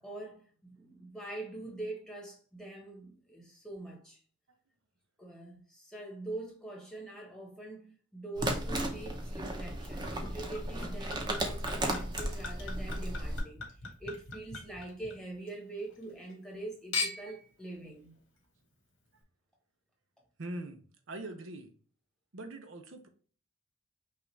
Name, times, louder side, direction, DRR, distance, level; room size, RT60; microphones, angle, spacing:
voice 1, 0.0-4.2 5.2-13.7 14.0-18.1, right 2 dB, 5° left, 1.2 m, -44 dB
sound 1, 8.3-13.4, right 1 dB, 20° right, 0.7 m, -35 dB
Chink clink / Liquid, 10.0-15.5 15.9-16.6 16.9-17.4 18.2-18.3, left 4 dB, 85° left, 1.8 m, -41 dB
voice 2, 20.4-21.7 22.3-23.1, right 1 dB, 90° right, 0.8 m, -42 dB
5.6 x 2.5 x 3.2 m
head